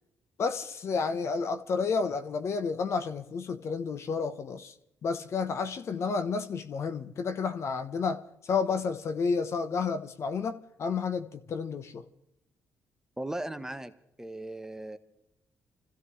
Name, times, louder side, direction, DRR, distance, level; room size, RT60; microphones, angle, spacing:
voice 1, 0.4-4.7 5.0-12.1, left 5 dB, 60° left, 1.1 m, -31 dB
voice 2, 13.2-13.9 14.2-15.0, right 1 dB, 10° right, 1.2 m, -37 dB
25.0 x 15.5 x 3.3 m
supercardioid pair, 65°, 5 cm